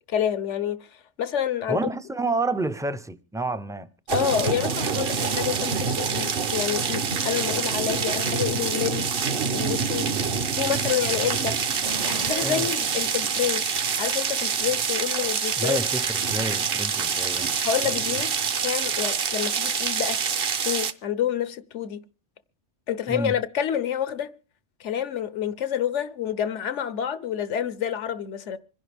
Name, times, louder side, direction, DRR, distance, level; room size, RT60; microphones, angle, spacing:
voice 1, 0.1-1.8 4.1-9.1 9.5-10.1 10.5-11.6 12.0-15.8 17.6-18.3 18.6-20.2 20.6-22.0 22.9-24.3 24.8-28.6, left 9 dB, 80° left, 1.2 m, -28 dB
voice 2, 1.7-3.9 12.4-12.7 15.6-17.5 23.1-23.4, right 2 dB, 5° right, 0.4 m, -29 dB
sound 1, 4.1-20.9, right 6 dB, 55° right, 1.0 m, -26 dB
sound 2, 11.8-14.0 14.4-14.5, right 5 dB, 35° right, 0.8 m, -37 dB
26.0 x 11.0 x 3.5 m
omnidirectional pair, 1.2 m